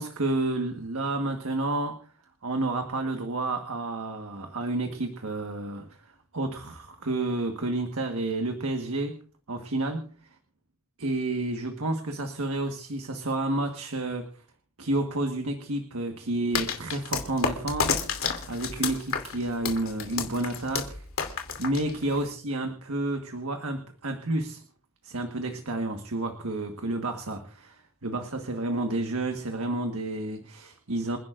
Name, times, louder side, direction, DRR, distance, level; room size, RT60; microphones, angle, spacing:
voice 1, 0.0-2.0 2.4-9.2 9.5-10.1 11.0-14.4 14.8-21.0 21.6-24.6 25.0-31.2, right 2 dB, 80° right, 5 dB, 1.5 m, -30 dB
sound 1, 16.5-22.3, left 5 dB, 75° left, 2.7 m, -30 dB
28.5 x 11.0 x 2.5 m, 0.43 s
head